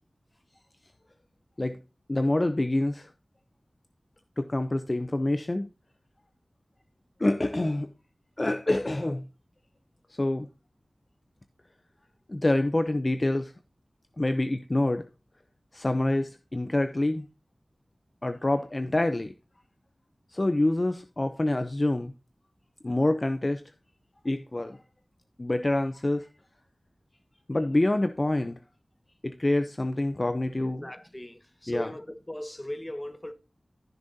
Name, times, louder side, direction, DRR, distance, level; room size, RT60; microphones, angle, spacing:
voice 1, 2.1-3.1 4.4-5.7 7.2-7.9 8.4-9.3 10.1-10.5 12.3-13.5 14.2-15.1 15.7-17.3 18.2-19.3 20.3-22.1 22.8-23.6 24.2-24.8 25.4-26.3 27.5-28.6 29.2-30.9 31.7-31.9, left 1 dB, 35° left, 0.7 m, -26 dB
voice 2, 30.8-33.3, left 1 dB, 15° left, 1.2 m, -38 dB
14.5 x 6.4 x 2.8 m
wide cardioid pair, 70°, 0 cm